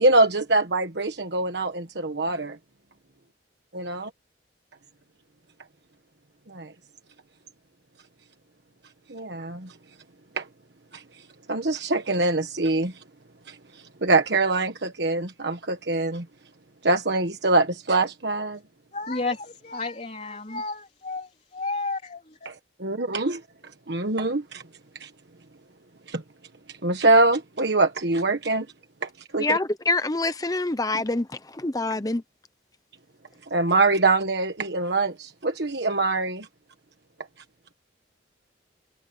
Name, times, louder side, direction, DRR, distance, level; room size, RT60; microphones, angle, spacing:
voice 1, 0.0-2.6 3.7-4.1 6.5-6.7 9.1-9.7 10.4-10.5 10.9-11.0 11.5-13.0 13.5-16.2 16.8-18.6 22.4-22.5 22.8-23.4 23.9-24.6 25.0-25.1 26.1-26.2 26.8-28.7 29.0-29.6 33.5-36.5, right 2 dB, 65° right, 1.4 m, -24 dB
voice 2, 18.9-22.5, left 3 dB, 35° left, 3.7 m, -32 dB
voice 3, 29.4-31.3 31.6-32.2, left 2 dB, 20° left, 0.9 m, -25 dB
head